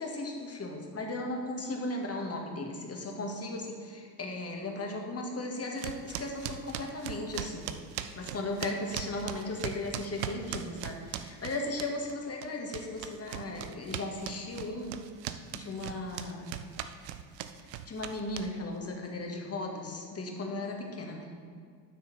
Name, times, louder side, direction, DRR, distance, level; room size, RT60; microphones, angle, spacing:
voice 1, 0.0-7.7 8.2-15.0 15.5-16.5 17.9-21.3, left 2 dB, 30° left, 1 dB, 1.8 m, -36 dB
sound 1, 5.8-12.1 12.4-18.8, right 11 dB, 85° right, 0.6 m, -39 dB
11.5 x 6.3 x 4.2 m, 2.1 s
hypercardioid pair, 55°, 49 cm